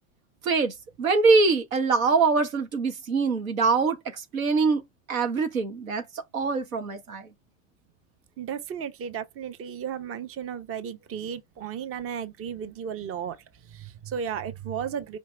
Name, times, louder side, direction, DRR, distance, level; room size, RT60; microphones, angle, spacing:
voice 1, 0.4-4.0 4.3-4.8 5.1-6.0 6.3-7.3, right 4 dB, 90° right, 1.2 m, -23 dB
voice 2, 8.4-13.4 13.7-15.2, right 8 dB, 35° right, 0.9 m, -34 dB
5.2 x 2.9 x 3.3 m
hypercardioid pair, 90°, 40 cm